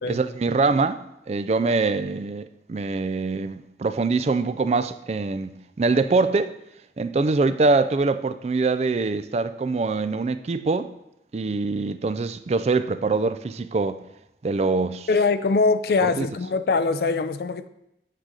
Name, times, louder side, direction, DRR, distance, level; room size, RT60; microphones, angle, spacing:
voice 1, 0.1-6.5 7.0-10.9 11.3-14.0 14.4-15.1 16.0-16.3, right 3 dB, 35° right, 0.3 m, -24 dB
voice 2, 15.1-17.7, left 4 dB, 60° left, 0.4 m, -22 dB
8.8 x 3.9 x 6.3 m
head